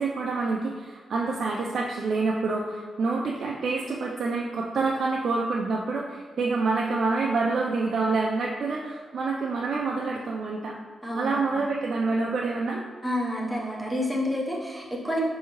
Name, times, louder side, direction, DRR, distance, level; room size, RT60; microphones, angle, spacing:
voice 1, 0.0-10.8 11.1-12.8, right 3 dB, 60° right, -2 dB, 0.4 m, -27 dB
voice 2, 11.0-11.6 13.0-15.2, left 1 dB, ahead, -4 dB, 0.8 m, -30 dB
5.5 x 2.7 x 3.0 m, 1.4 s
cardioid pair, 120°, 0 cm